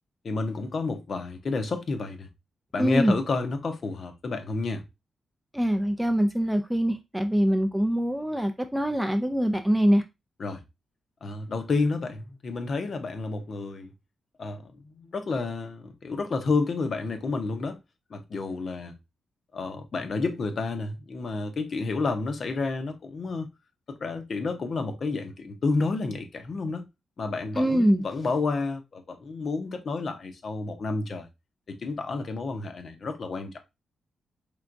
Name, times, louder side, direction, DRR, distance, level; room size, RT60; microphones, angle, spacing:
voice 1, 0.2-2.3 2.7-4.8 10.4-10.6 11.2-13.9 14.4-17.8 18.1-18.9 19.5-23.5 23.9-26.9 27.2-31.3 31.7-33.6, left 3 dB, 40° left, 0.6 m, -30 dB
voice 2, 2.8-3.2 5.5-10.0 27.5-28.0, equal, 5° right, 0.4 m, -24 dB
4.5 x 3.4 x 2.5 m
wide cardioid pair, 170°, 0 cm